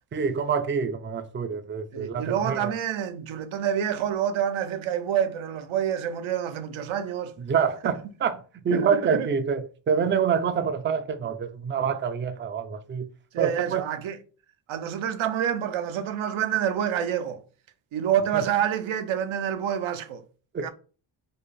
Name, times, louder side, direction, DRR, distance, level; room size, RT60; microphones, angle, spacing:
voice 1, 0.1-2.7 7.4-13.1 13.4-13.8 18.3-18.4 20.5-20.7, right 6 dB, 25° right, 0.4 m, -26 dB
voice 2, 1.9-7.3 8.7-9.3 13.3-14.2 14.7-17.4 17.9-20.2 20.6-20.7, right 9 dB, 70° right, 0.7 m, -27 dB
4.4 x 2.4 x 3.2 m
cardioid pair, 70°, 50 cm